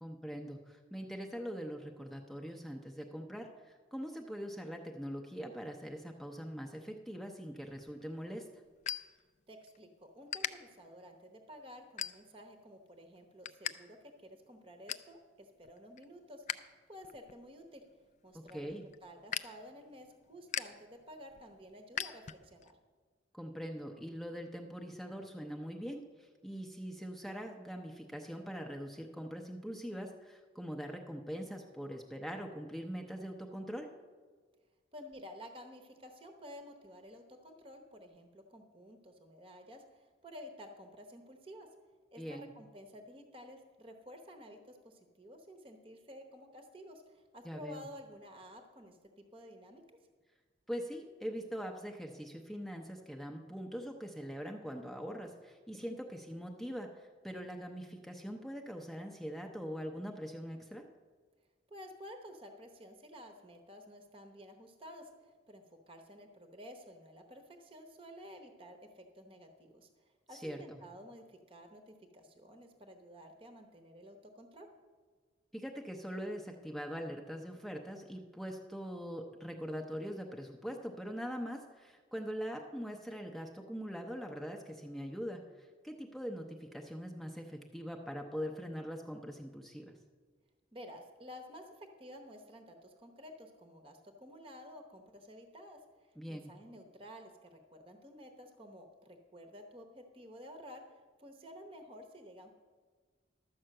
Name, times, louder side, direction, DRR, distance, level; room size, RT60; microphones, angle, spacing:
voice 1, 0.0-8.5 18.3-18.9 23.3-33.9 42.2-42.5 47.4-47.9 50.7-60.8 70.3-70.8 75.5-90.0 96.2-96.5, equal, ahead, 2 dB, 0.6 m, -42 dB
sound 1, 7.7-9.8 10.1-10.5 11.1-11.3 11.8-12.5 12.9-13.7 14.0-14.1 14.5-15.1 15.6-16.6 16.9-22.7, left 10 dB, 40° left, 0.3 m, -42 dB
voice 2, 9.5-16.4 16.9-17.8 18.2-22.7 34.9-41.7 42.1-49.0 49.3-49.8 61.7-74.7 90.7-95.8 96.3-100.8 101.2-102.6, equal, 25° right, 5 dB, 0.9 m, -52 dB
12.0 x 5.7 x 7.6 m, 1.5 s
head